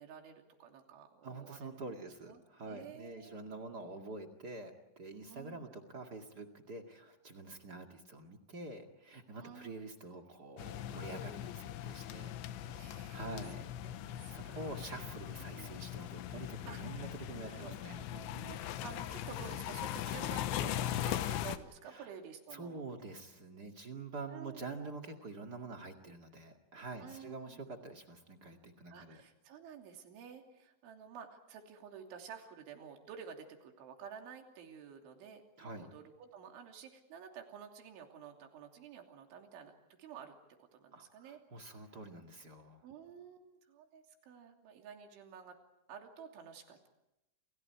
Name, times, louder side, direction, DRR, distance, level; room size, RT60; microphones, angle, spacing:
voice 1, 0.0-1.8 2.3-3.3 5.3-5.7 9.4-9.9 12.1-13.7 14.0-15.0 15.4-15.8 16.7-17.1 17.4-22.8 24.3-24.6 27.0-27.6 28.9-39.7 40.0-40.3 40.7-41.4 42.8-45.6 45.9-46.9, right 7 dB, 80° right, 3 dB, 5.3 m, -51 dB
voice 2, 1.2-13.7 14.2-18.0 18.3-18.6 21.9-22.1 22.5-29.2 35.6-35.9 40.9-42.8, right 3 dB, 45° right, 3 dB, 1.3 m, -47 dB
sound 1, 10.6-21.6, left 12 dB, 80° left, 3.3 m, -40 dB
30.0 x 29.5 x 4.8 m, 0.89 s
omnidirectional pair, 5.4 m